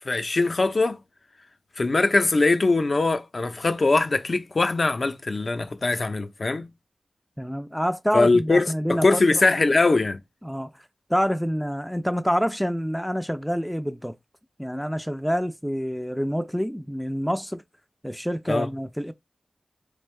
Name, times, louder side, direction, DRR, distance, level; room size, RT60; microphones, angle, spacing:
voice 1, 0.1-1.0 1.8-6.7 8.1-10.2 18.5-18.7, left 3 dB, 50° left, 0.6 m, -21 dB
voice 2, 7.4-9.4 10.4-10.8 11.1-14.2 14.6-17.6 18.0-19.1, equal, ahead, 0.4 m, -27 dB
3.4 x 3.3 x 3.2 m
wide cardioid pair, 65°, 0 cm